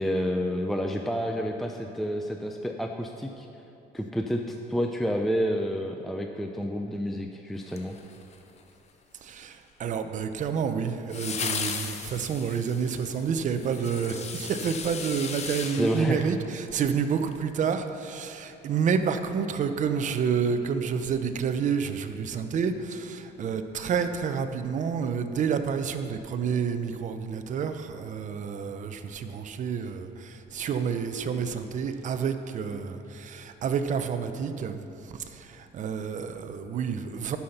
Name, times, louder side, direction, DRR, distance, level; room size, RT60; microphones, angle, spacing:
voice 1, 0.0-3.5 3.9-8.0 15.6-16.2, equal, ahead, 3 dB, 0.5 m, -29 dB
sound 1, 7.7-8.6 11.1-16.9 17.3-17.4, left 6 dB, 40° left, 0.9 m, -36 dB
voice 2, 9.2-34.8 35.1-37.4, right 6 dB, 45° right, 8 dB, 0.7 m, -29 dB
12.0 x 5.7 x 5.9 m, 2.9 s
cardioid pair, 110°, 17 cm